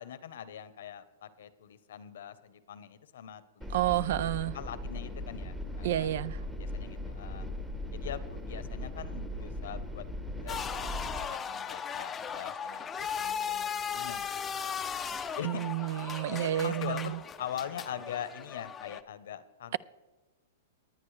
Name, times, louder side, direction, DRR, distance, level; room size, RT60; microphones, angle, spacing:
voice 1, 0.0-4.1 4.5-6.1 6.6-7.5 7.9-14.5 15.3-15.6 16.3-19.8, left 9 dB, 75° left, 0.9 m, -43 dB
sound 1, 3.6-11.2, left 1 dB, 10° right, 1.0 m, -39 dB
voice 2, 3.7-4.5 5.8-6.4 15.4-17.2, right 13 dB, 60° right, 0.3 m, -30 dB
sound 2, 10.5-19.0, left 7 dB, 15° left, 0.5 m, -37 dB
19.5 x 9.5 x 3.3 m
hypercardioid pair, 155°, 0 cm